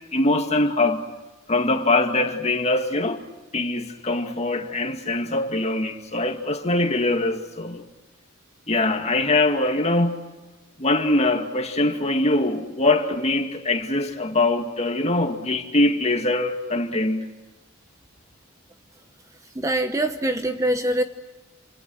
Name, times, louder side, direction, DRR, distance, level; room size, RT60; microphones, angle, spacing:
voice 1, 0.1-1.1 1.5-3.2 3.5-7.8 8.7-10.2 10.8-17.3, left 2 dB, 30° left, 2.2 m, -23 dB
voice 2, 19.6-21.0, right 1 dB, 15° right, 1.0 m, -23 dB
28.0 x 26.5 x 6.4 m
head